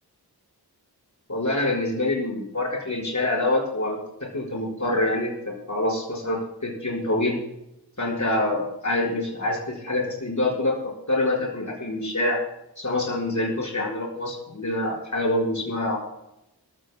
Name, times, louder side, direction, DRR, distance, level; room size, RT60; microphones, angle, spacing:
voice 1, 1.3-4.0 4.3-7.4 8.0-10.7 11.1-12.4 12.8-16.0, left 2 dB, 45° left, -3 dB, 5.0 m, -26 dB
26.5 x 14.5 x 2.2 m, 0.84 s
wide cardioid pair, 75°, 40 cm